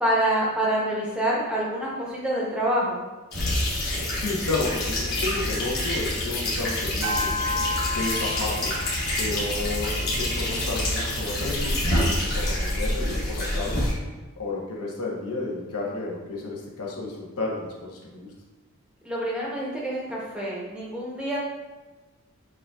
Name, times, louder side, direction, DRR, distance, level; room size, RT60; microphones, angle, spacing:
voice 1, 0.0-3.0 19.0-21.4, right 1 dB, 5° right, -5 dB, 0.7 m, -26 dB
sound 1, 3.3-13.9, left 1 dB, 45° left, 1.2 m, -27 dB
voice 2, 4.1-7.3 7.9-8.8 9.2-13.9 14.4-18.3, left 2 dB, 85° left, -3 dB, 0.9 m, -32 dB
sound 2, 7.0-11.6, left 2 dB, 75° right, 0.5 m, -33 dB
6.7 x 2.6 x 2.3 m, 1.2 s
head